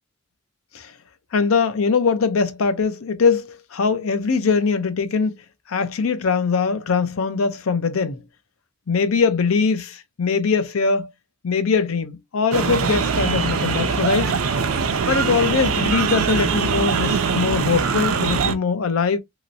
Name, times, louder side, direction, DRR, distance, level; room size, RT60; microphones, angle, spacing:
voice 1, 1.3-5.4 5.7-8.2 8.9-11.1 11.4-14.3 15.1-19.2, left 5 dB, 85° left, 0.6 m, -21 dB
sound 1, 12.5-18.5, right 5 dB, 90° right, 0.5 m, -22 dB
3.0 x 2.9 x 2.6 m
head